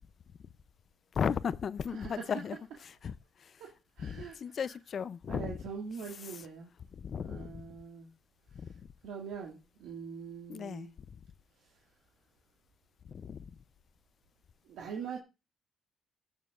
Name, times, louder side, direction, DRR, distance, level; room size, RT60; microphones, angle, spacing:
voice 1, 1.1-3.6 4.0-5.6 6.9-7.6 8.5-8.9 10.5-10.9 13.0-13.6, left 7 dB, 50° left, 0.5 m, -36 dB
voice 2, 1.9-2.3 3.6-4.4 5.3-6.7 7.2-8.1 8.5-10.9 11.6-11.8 14.6-15.2, right 6 dB, 85° right, 1.9 m, -43 dB
21.5 x 7.3 x 2.4 m
cardioid pair, 90°, 0 cm